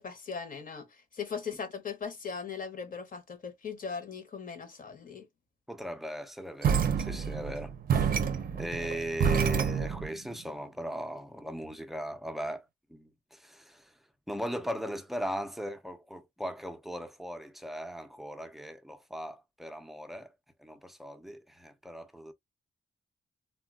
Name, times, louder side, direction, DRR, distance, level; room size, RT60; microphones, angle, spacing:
voice 1, 0.0-5.3, left 6 dB, 45° left, 0.8 m, -39 dB
voice 2, 5.7-8.1 8.6-13.9 14.3-20.3 20.6-22.3, equal, ahead, 0.4 m, -38 dB
sound 1, 6.6-10.1, right 7 dB, 50° right, 0.5 m, -28 dB
3.6 x 2.2 x 2.2 m
wide cardioid pair, 140°, 19 cm